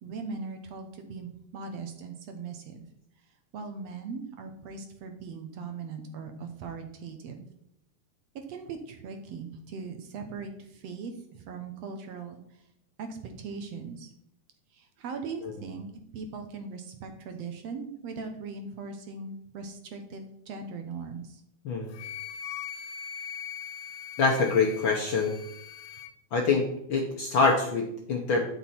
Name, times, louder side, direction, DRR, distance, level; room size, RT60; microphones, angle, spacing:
voice 1, 0.0-2.8 3.5-7.5 8.4-12.4 13.0-14.1 14.7-15.9 16.1-21.4, right 4 dB, 65° right, 6 dB, 1.9 m, -39 dB
voice 2, 21.6-22.0 24.2-25.4 26.3-28.5, left 4 dB, 60° left, 1 dB, 1.4 m, -25 dB
Wind instrument woodwind instrument, 21.9-26.1, left 8 dB, 80° left, 2.2 m, -40 dB
12.0 x 6.2 x 4.4 m, 0.74 s
omnidirectional pair, 3.5 m